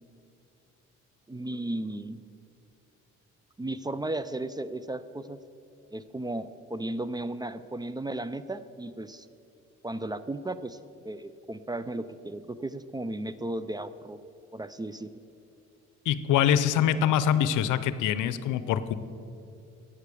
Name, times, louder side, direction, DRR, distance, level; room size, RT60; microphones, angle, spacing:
voice 1, 1.3-2.2 3.6-5.4 5.9-9.3 9.8-10.8 11.0-14.2 14.5-15.1, right 2 dB, 15° right, 14 dB, 0.3 m, -35 dB
voice 2, 16.1-18.9, left 9 dB, 85° left, 14 dB, 0.6 m, -24 dB
9.3 x 8.2 x 6.9 m, 2.6 s
cardioid pair, 90°, 30 cm